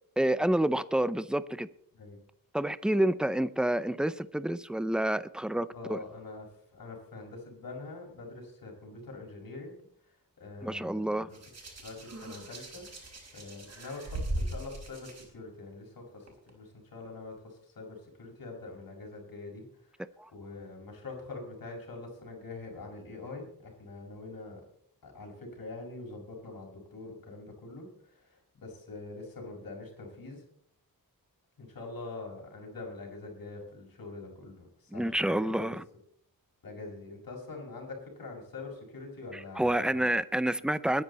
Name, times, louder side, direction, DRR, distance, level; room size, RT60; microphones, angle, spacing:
voice 1, 0.2-1.7 2.5-6.0 10.6-11.3 20.2-20.3 34.9-35.8 39.3-41.0, right 1 dB, ahead, 0.5 m, -28 dB
voice 2, 5.7-6.5 6.7-9.8 10.1-11.4 11.8-19.7 19.9-20.0 20.3-24.6 25.0-30.4 31.6-35.8 36.6-40.1, left 3 dB, 70° left, 5.8 m, -44 dB
Hands, 11.3-15.2 16.3-16.5, right 1 dB, 45° right, 5.3 m, -38 dB
20.5 x 10.5 x 4.1 m
wide cardioid pair, 165°, 36 cm